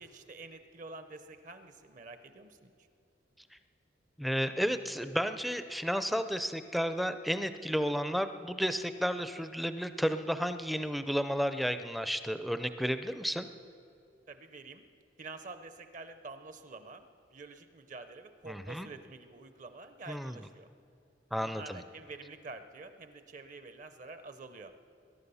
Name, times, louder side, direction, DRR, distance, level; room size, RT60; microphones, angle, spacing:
voice 1, 0.0-2.7 14.3-14.8 15.2-20.7 21.4-24.7, right 3 dB, 45° right, 9 dB, 0.7 m, -48 dB
voice 2, 4.2-13.5 18.5-18.9 20.1-20.4 21.3-21.8, equal, ahead, 10 dB, 0.5 m, -32 dB
21.0 x 11.0 x 5.6 m, 2.7 s
head